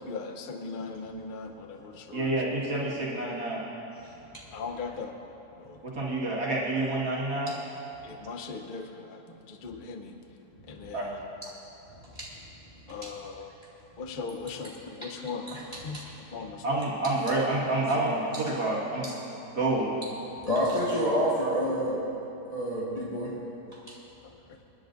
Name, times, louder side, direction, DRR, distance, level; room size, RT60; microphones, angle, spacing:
voice 1, 0.0-2.6 4.5-5.3 5.6-5.8 8.0-10.2 10.6-11.3 12.9-13.5 14.0-15.5 15.8-16.0 16.3-16.8 24.2-24.6, left 4 dB, 45° left, 5 dB, 0.7 m, -39 dB
voice 2, 2.1-3.6 4.8-4.9 5.8-7.5 10.9-11.0 16.6-19.1 19.5-20.0, right 2 dB, 70° right, -5 dB, 2.4 m, -28 dB
voice 3, 20.4-22.1 22.5-23.3 23.9-24.0, equal, 25° left, -7 dB, 1.7 m, -29 dB
27.0 x 10.5 x 2.6 m, 2.9 s
omnidirectional pair, 1.8 m